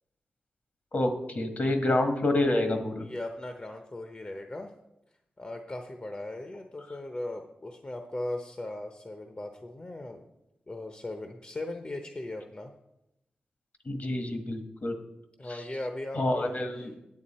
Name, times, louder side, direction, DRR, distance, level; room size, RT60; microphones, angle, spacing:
voice 1, 0.9-3.0 13.8-14.9 15.5-15.6 16.1-16.9, left 1 dB, 55° left, 5 dB, 1.5 m, -28 dB
voice 2, 3.0-4.7 5.4-10.2 10.7-12.7 15.4-16.9, left 1 dB, 35° left, 5 dB, 0.8 m, -38 dB
9.5 x 8.5 x 4.3 m, 0.87 s
cardioid pair, 65°, 3 cm